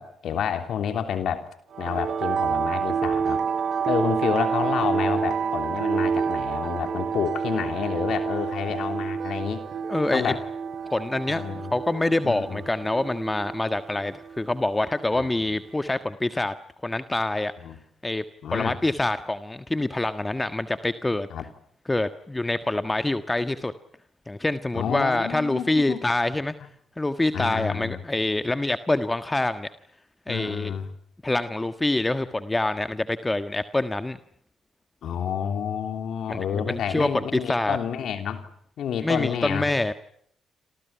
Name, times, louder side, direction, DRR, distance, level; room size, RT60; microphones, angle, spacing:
voice 1, 0.0-1.4 1.8-3.4 3.9-9.6 10.1-10.4 11.3-11.7 12.2-12.6 15.2-15.3 17.6-17.8 18.4-18.8 21.3-21.5 24.7-26.0 27.3-28.0 30.3-30.9 35.0-38.4 38.8-39.7, left 8 dB, 65° left, 8 dB, 3.1 m, -29 dB
sound 1, 1.7-15.8, right 6 dB, 60° right, 2.5 m, -29 dB
voice 2, 9.9-10.3 10.9-16.5 16.8-17.5 18.0-18.2 18.5-21.3 21.9-23.7 24.3-26.5 27.0-29.7 30.3-30.7 31.2-34.2 36.3-37.8 39.0-39.9, left 2 dB, 20° left, 11 dB, 1.5 m, -26 dB
28.5 x 28.0 x 5.8 m, 0.67 s
hypercardioid pair, 45°, 0 cm